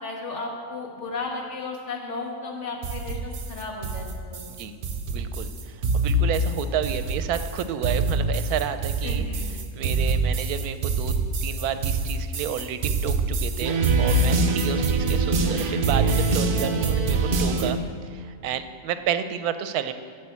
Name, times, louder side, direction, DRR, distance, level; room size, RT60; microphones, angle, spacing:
voice 1, 0.0-4.4 9.0-9.5, left 3 dB, 50° left, 0 dB, 1.8 m, -34 dB
sound 1, 2.8-17.7, right 3 dB, 45° right, 0.8 m, -24 dB
voice 2, 5.1-9.3 9.7-11.1 11.4-17.8 18.0-19.9, right 9 dB, 85° right, 11 dB, 1.1 m, -31 dB
11.5 x 5.3 x 8.2 m, 2.1 s
omnidirectional pair, 1.5 m